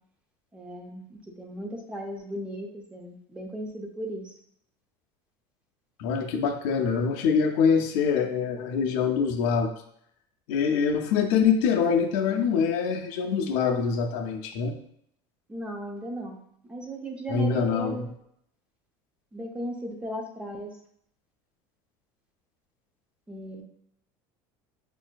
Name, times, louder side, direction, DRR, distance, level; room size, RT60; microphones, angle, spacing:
voice 1, 0.5-4.4 15.5-16.4 16.7-18.0 19.3-20.7 23.3-23.6, right 1 dB, 10° right, 1 dB, 0.5 m, -36 dB
voice 2, 6.0-9.7 10.5-14.8 17.3-18.0, left 6 dB, 65° left, 4 dB, 0.5 m, -24 dB
5.2 x 2.5 x 2.2 m, 0.71 s
cardioid pair, 150°, 11 cm